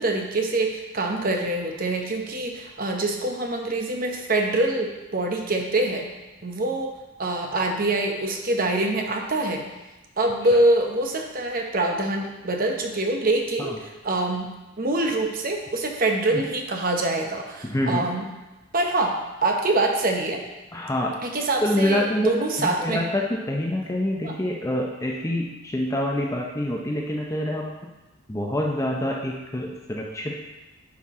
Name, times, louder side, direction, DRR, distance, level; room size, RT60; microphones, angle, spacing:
voice 1, 0.0-6.1 6.4-6.9 7.2-9.7 10.2-14.5 14.8-18.3 18.7-20.4 21.2-23.0 24.2-24.4, right 2 dB, 45° right, 2 dB, 0.9 m, -25 dB
voice 2, 17.6-18.0 20.7-21.1 21.6-22.3 22.6-27.9 28.3-30.4, left 1 dB, 15° left, -1 dB, 0.6 m, -26 dB
9.4 x 4.5 x 3.7 m, 1.1 s
head